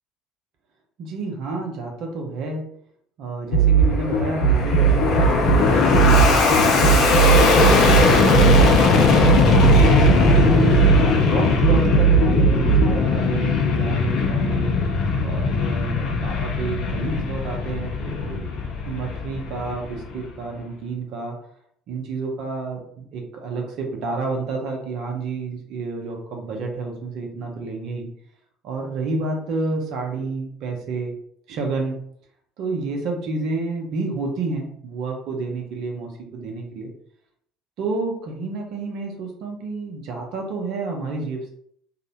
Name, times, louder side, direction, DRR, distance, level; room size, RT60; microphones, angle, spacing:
voice 1, 1.0-2.7 3.2-7.1 7.6-8.2 8.9-14.7 15.2-18.5 18.8-21.4 21.9-28.1 28.6-31.1 31.5-32.0 32.6-36.9 37.8-41.5, right 3 dB, 55° right, 2 dB, 0.6 m, -29 dB
sound 1, 3.5-12.9, right 6 dB, 80° left, 0.8 m, -17 dB
Fixed-wing aircraft airplane, 3.7-20.3, left 4 dB, 50° left, 0.5 m, -20 dB
2.7 x 2.1 x 2.7 m, 0.67 s
figure-of-eight pair, 60°, 0 cm